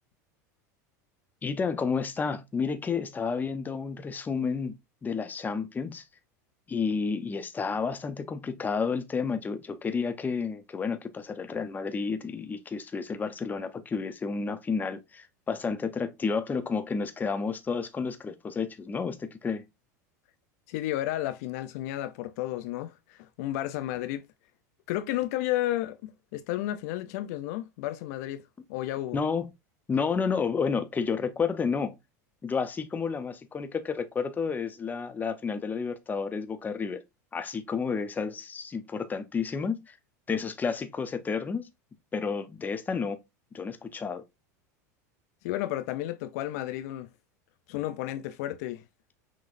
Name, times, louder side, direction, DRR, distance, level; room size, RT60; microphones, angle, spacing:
voice 1, 1.4-4.7 5.0-6.0 6.7-19.6 29.1-29.5 29.9-31.9 32.4-37.0 37.3-40.0 40.3-41.7 42.1-43.2 43.5-44.2, left 5 dB, 20° left, 0.7 m, -31 dB
voice 2, 20.7-24.3 24.9-28.4 28.7-29.2 45.4-47.1 47.7-48.8, left 14 dB, 65° left, 0.4 m, -32 dB
5.9 x 3.0 x 2.5 m
hypercardioid pair, 105°, 9 cm